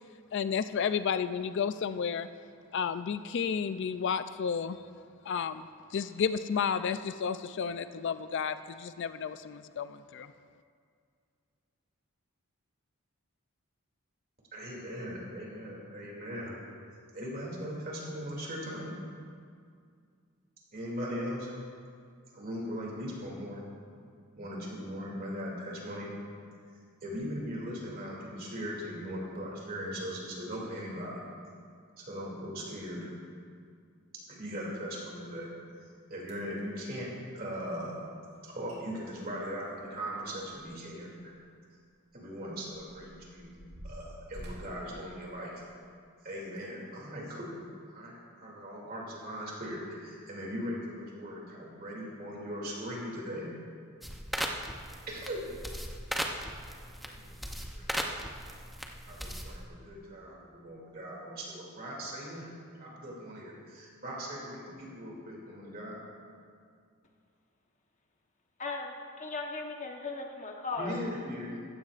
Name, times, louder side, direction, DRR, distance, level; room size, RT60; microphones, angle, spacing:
voice 1, 0.3-2.3 2.7-4.8 5.3-5.6 5.9-10.3, left 6 dB, 55° left, 12 dB, 0.3 m, -32 dB
voice 2, 14.5-16.6 17.1-19.0 20.7-21.6 22.3-23.6 24.4-26.1 27.0-31.2 32.0-33.1 34.3-35.5 35.8-38.1 38.4-41.3 42.1-45.6 46.2-53.5 55.1-56.0 56.4-58.2 59.0-66.0 70.8-71.6, equal, 40° right, -3 dB, 2.6 m, -39 dB
sound 1, 36.2-36.6 38.4-38.5 38.7-38.8 39.1-40.9 41.3-41.4 42.1-45.9 46.5-46.7 47.3-47.4, equal, 85° right, 3.0 m, -49 dB
sound 2, 54.0-59.7, equal, ahead, 0.6 m, -38 dB
voice 3, 68.6-71.0, left 3 dB, 35° left, 2 dB, 1.1 m, -37 dB
15.5 x 15.0 x 2.5 m, 2.2 s
head